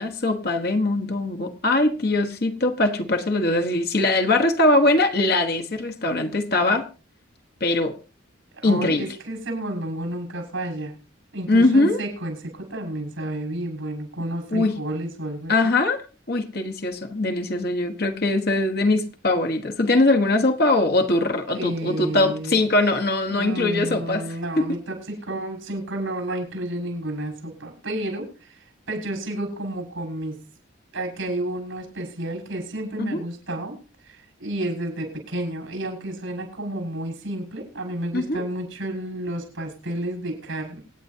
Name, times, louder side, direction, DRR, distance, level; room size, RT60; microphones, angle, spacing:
voice 1, 0.0-6.9 7.6-8.0 8.6-9.0 11.5-12.0 14.5-14.7 15.5-16.0 16.3-24.2 24.6-24.7 33.0-33.2 38.1-38.4, left 2 dB, 50° left, 6 dB, 1.3 m, -21 dB
voice 2, 8.5-10.9 11.3-15.8 21.5-22.6 23.3-30.4 30.9-33.8 34.0-40.8, right 1 dB, 75° right, 3 dB, 6.1 m, -31 dB
27.0 x 9.2 x 2.8 m, 0.34 s
head